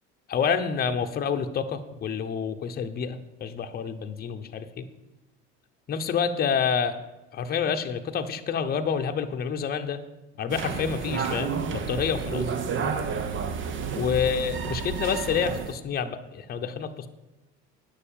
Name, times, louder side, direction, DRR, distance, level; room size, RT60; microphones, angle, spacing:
voice 1, 0.3-4.9 5.9-7.0 7.3-10.0 10.4-12.5 14.0-17.1, left 6 dB, 30° left, 6 dB, 0.8 m, -28 dB
sound 1, 10.5-15.7, right 6 dB, 45° right, 1.0 m, -30 dB
9.7 x 6.8 x 7.2 m, 1.1 s
supercardioid pair, 110°, 29 cm